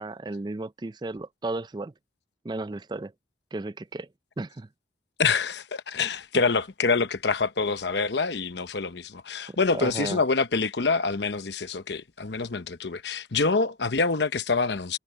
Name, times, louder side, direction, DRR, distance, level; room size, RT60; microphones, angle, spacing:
voice 1, 0.0-1.9 2.4-3.1 3.5-4.1 4.4-4.7 9.5-10.2, right 2 dB, 25° right, 0.4 m, -34 dB
voice 2, 5.2-15.0, left 4 dB, 70° left, 0.9 m, -26 dB
head